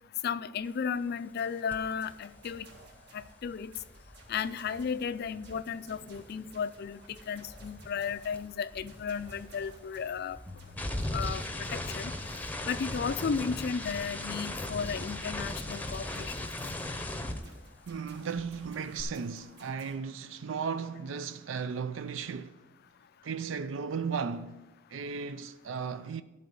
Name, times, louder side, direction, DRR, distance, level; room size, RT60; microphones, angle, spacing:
voice 1, 0.2-2.7 3.1-3.7 4.3-10.4 11.1-12.1 12.7-16.5, left 6 dB, 55° left, 0.4 m, -34 dB
sound 1, 1.4-19.9, right 2 dB, 60° right, 1.7 m, -57 dB
sound 2, 1.7-1.9 2.2-6.6 6.8-18.1 18.4-19.0, left 1 dB, 10° left, 0.7 m, -38 dB
sound 3, 10.5-12.3, left 2 dB, 30° right, 2.1 m, -52 dB
voice 2, 17.9-22.6 23.2-24.6 24.9-26.2, right 6 dB, 80° right, 0.4 m, -35 dB
11.5 x 4.1 x 7.0 m
head